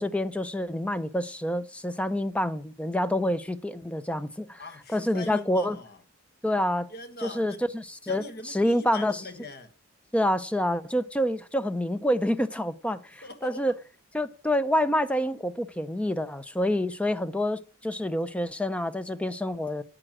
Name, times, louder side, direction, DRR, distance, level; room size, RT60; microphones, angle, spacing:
voice 1, 0.0-4.6 4.9-5.8 6.4-6.9 7.2-8.2 8.5-9.2 10.1-13.7 14.1-19.8, left 1 dB, 5° left, 0.5 m, -27 dB
voice 2, 4.6-6.0 6.9-7.6 8.1-9.7 13.2-13.6, left 3 dB, 45° left, 1.2 m, -41 dB
9.0 x 8.9 x 6.0 m
head